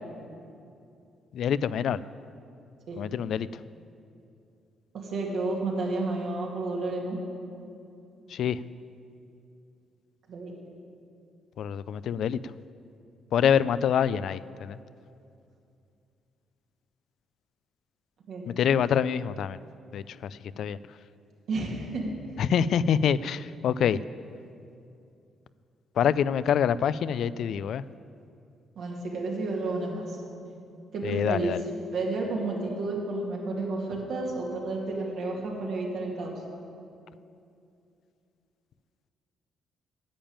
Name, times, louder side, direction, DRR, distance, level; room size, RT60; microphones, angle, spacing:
voice 1, 1.3-2.0 3.0-3.6 8.3-8.6 11.6-12.4 13.3-14.8 18.5-19.6 19.9-20.8 22.4-24.0 26.0-27.8 31.0-31.6, left 8 dB, 70° left, 16 dB, 0.3 m, -26 dB
voice 2, 4.9-7.2 10.3-10.5 18.3-18.4 21.5-22.1 28.8-30.2 30.9-31.5 31.9-36.3, right 3 dB, 70° right, -1 dB, 2.4 m, -31 dB
10.5 x 7.1 x 8.8 m, 2.6 s
cardioid pair, 90°, 0 cm